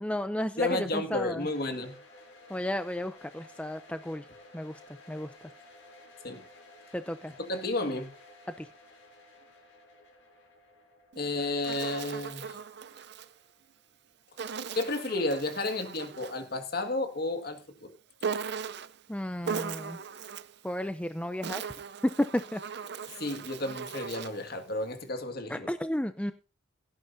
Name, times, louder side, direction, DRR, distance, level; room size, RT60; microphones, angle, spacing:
voice 1, 0.0-1.5 2.5-4.3 4.5-4.8 5.1-5.3 6.9-7.3 8.6-8.7 19.1-20.0 20.6-21.6 22.3-22.6 25.5-26.3, left 1 dB, 5° left, 0.5 m, -33 dB
voice 2, 0.6-1.9 6.2-6.4 7.4-8.1 11.2-12.6 14.8-18.0 23.2-25.7, left 2 dB, 50° left, 1.9 m, -32 dB
sound 1, 1.4-14.2, left 2 dB, 70° left, 6.9 m, -55 dB
Insect, 11.1-13.3 14.4-16.5 18.2-19.0 19.4-20.6 21.2-24.5, right 6 dB, 55° right, 0.6 m, -38 dB
17.0 x 12.5 x 2.7 m
head